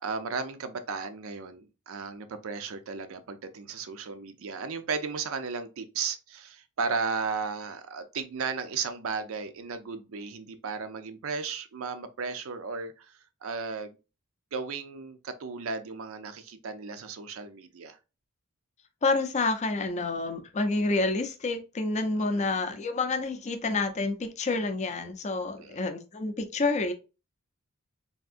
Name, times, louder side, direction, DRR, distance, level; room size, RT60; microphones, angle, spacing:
voice 1, 0.0-13.1 13.4-14.0 14.5-18.0 22.3-22.5 25.6-25.8, right 5 dB, 65° right, 0.5 m, -35 dB
voice 2, 19.0-26.9, left 3 dB, 30° left, 0.4 m, -28 dB
3.5 x 2.6 x 2.4 m
head